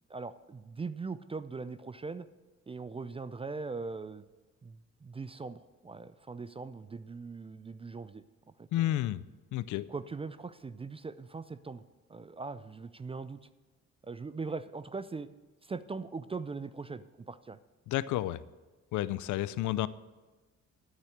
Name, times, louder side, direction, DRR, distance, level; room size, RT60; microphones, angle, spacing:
voice 1, 0.1-2.3 2.7-4.2 4.6-8.2 8.6-8.9 9.9-11.8 12.1-13.4 14.0-15.3 15.6-17.6, right 4 dB, 20° right, 14 dB, 0.4 m, -40 dB
voice 2, 8.7-9.2 9.5-9.9 17.9-18.4 18.9-19.9, left 14 dB, 75° left, 17 dB, 0.5 m, -31 dB
8.9 x 6.7 x 7.9 m, 1.2 s
cardioid pair, 90°, 30 cm